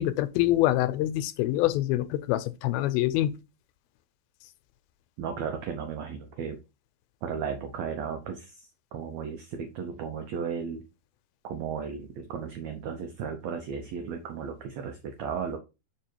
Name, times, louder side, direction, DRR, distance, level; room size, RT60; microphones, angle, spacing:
voice 1, 0.0-3.3, left 15 dB, 85° left, 2.4 m, -25 dB
voice 2, 5.2-6.6 7.2-10.8 11.4-15.6, right 6 dB, 85° right, 1.5 m, -35 dB
5.3 x 4.8 x 4.4 m
omnidirectional pair, 4.2 m